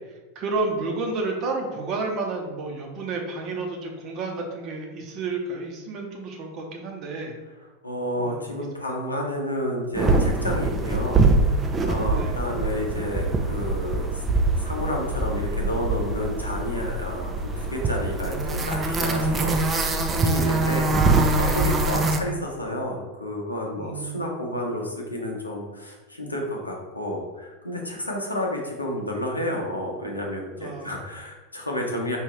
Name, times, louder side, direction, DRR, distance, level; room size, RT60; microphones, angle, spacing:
voice 1, 0.3-7.3 8.2-8.5 12.1-12.4 23.8-24.2 30.6-31.0, right 3 dB, 45° right, 2 dB, 0.9 m, -31 dB
voice 2, 7.8-14.2 14.6-32.2, left 1 dB, 90° left, 0 dB, 0.8 m, -31 dB
sound 1, 9.9-22.2, right 3 dB, 20° right, 0.5 m, -23 dB
4.9 x 2.7 x 3.1 m, 1.2 s
figure-of-eight pair, 85°, 0 cm